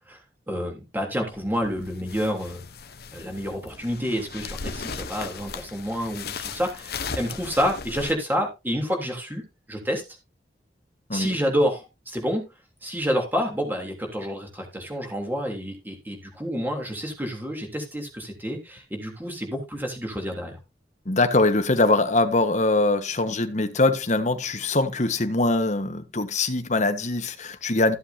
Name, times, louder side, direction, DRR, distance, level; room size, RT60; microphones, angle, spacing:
voice 1, 0.5-2.6 3.1-9.4 9.7-10.0 11.1-12.4 12.8-20.6, equal, 10° right, 3.2 m, -28 dB
sound 1, 1.3-8.1, left 5 dB, 60° left, 1.0 m, -37 dB
voice 2, 21.1-28.0, left 2 dB, 45° left, 1.4 m, -22 dB
15.0 x 7.8 x 2.8 m
head